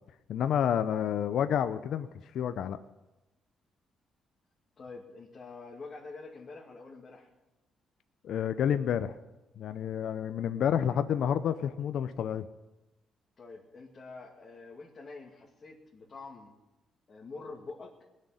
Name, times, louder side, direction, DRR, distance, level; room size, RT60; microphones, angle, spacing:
voice 1, 0.3-2.1 2.3-2.8 8.2-9.1 9.6-12.5, left 9 dB, 70° left, 11 dB, 0.6 m, -29 dB
voice 2, 4.8-7.3 13.4-16.5 17.1-17.9, left 3 dB, 40° left, -2 dB, 2.4 m, -46 dB
20.0 x 6.6 x 9.8 m, 1.0 s
cardioid pair, 90°, 0 cm